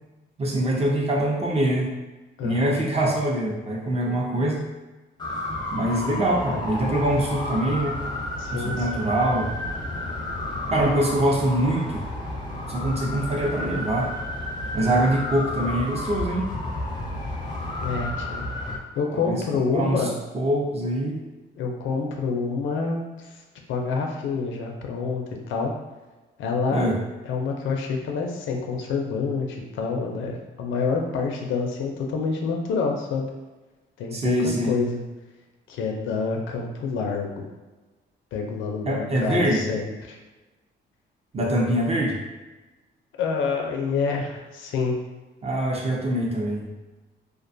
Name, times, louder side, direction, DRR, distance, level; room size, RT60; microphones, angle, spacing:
voice 1, 0.4-1.9 2.4-4.6 5.7-8.0 8.5-9.5 10.7-12.0 12.7-14.1 14.7-16.5 19.1-19.4 19.7-20.1 20.3-21.2 26.7-27.0 34.1-34.8 38.9-39.6 41.3-42.2 45.4-46.7, right 1 dB, 30° right, -2 dB, 0.6 m, -24 dB
voice 2, 2.4-2.7 8.4-9.1 17.8-18.5 19.0-20.2 21.6-23.4 23.7-25.7 26.4-26.9 27.3-33.3 34.0-34.3 34.7-35.0 35.7-37.4 38.3-40.2 43.2-45.0, left 4 dB, 75° left, 1 dB, 0.5 m, -27 dB
sound 1, 5.2-18.8, left 1 dB, 20° left, 0.5 m, -31 dB
2.4 x 2.2 x 2.5 m, 1.2 s
cardioid pair, 90°, 20 cm